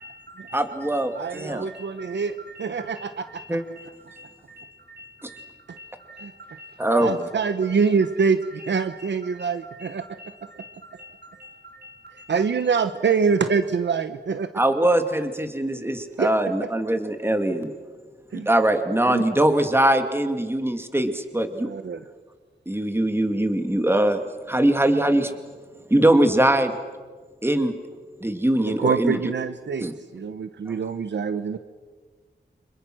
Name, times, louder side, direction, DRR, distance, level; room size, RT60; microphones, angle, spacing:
voice 1, 0.0-13.0 13.3-13.4, equal, 60° right, 4 dB, 5.1 m, -46 dB
voice 2, 0.5-1.6 3.5-3.6 6.8-7.1 14.5-17.7 18.5-21.7 22.7-24.2 24.5-25.4 25.9-26.7 27.4-27.7 28.2-29.2 29.8-29.9, right 1 dB, 15° right, 6 dB, 2.5 m, -21 dB
voice 3, 1.1-3.4 6.2-6.3 7.0-10.0 12.3-14.5 16.2-16.3 18.3-18.5 19.1-19.2 21.6-22.0 28.6-29.9 30.1-31.6, right 5 dB, 90° right, 10 dB, 1.0 m, -25 dB
29.5 x 27.0 x 6.4 m, 1.5 s
wide cardioid pair, 65°, 18 cm